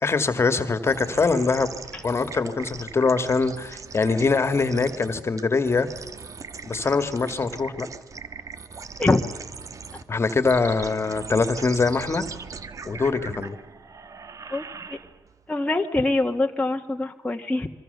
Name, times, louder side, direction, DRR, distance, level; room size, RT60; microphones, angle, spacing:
voice 1, 0.0-1.7 2.0-5.9 6.7-7.9 10.1-12.3 12.9-13.6, left 4 dB, 35° left, 10 dB, 2.1 m, -23 dB
sound 1, 0.8-15.4, right 5 dB, 45° right, 1.4 m, -40 dB
voice 2, 14.5-15.0 15.5-17.7, left 2 dB, 15° left, 1 dB, 1.7 m, -24 dB
26.5 x 24.0 x 6.9 m, 1.2 s
cardioid pair, 85°, 8 cm